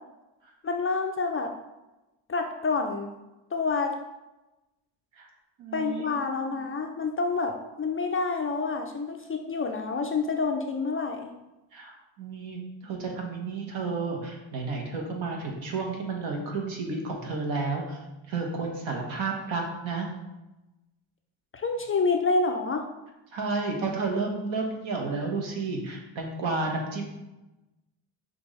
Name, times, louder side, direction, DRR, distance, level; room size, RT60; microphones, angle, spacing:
voice 1, 0.6-1.5 2.3-3.1 3.5-3.9 5.7-11.3 21.5-22.9, left 4 dB, 30° left, 3 dB, 0.4 m, -28 dB
voice 2, 5.6-6.2 11.7-18.0 18.3-20.1 23.3-27.0, right 3 dB, 65° right, 1 dB, 1.2 m, -31 dB
6.0 x 2.5 x 3.2 m, 1.0 s
supercardioid pair, 65°, 49 cm